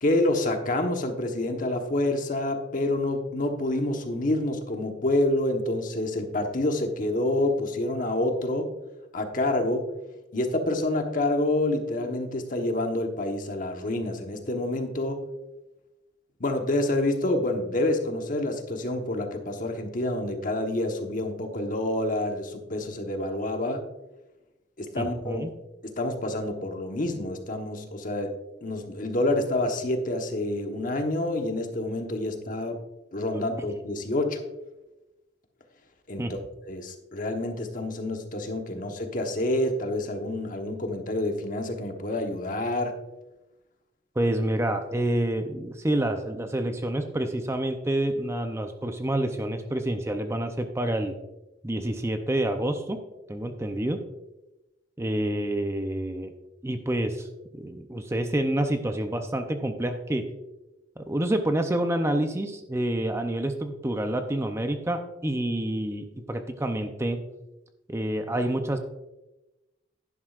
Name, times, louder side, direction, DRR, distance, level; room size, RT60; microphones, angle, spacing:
voice 1, 0.0-8.7 9.1-9.9 10.3-15.2 16.4-23.8 24.8-25.4 25.8-28.3 28.6-32.8 33.1-34.4 36.1-36.4 36.7-42.9, left 1 dB, 45° left, 4 dB, 1.2 m, -28 dB
voice 2, 24.9-25.5 33.3-33.4 36.2-36.3 38.7-38.8 44.2-51.1 51.6-53.0 53.3-54.0 55.0-56.3 56.6-57.3 57.5-60.2 61.0-67.2 67.9-68.8, right 1 dB, 15° right, 6 dB, 0.6 m, -28 dB
11.0 x 11.0 x 2.5 m, 1.0 s
head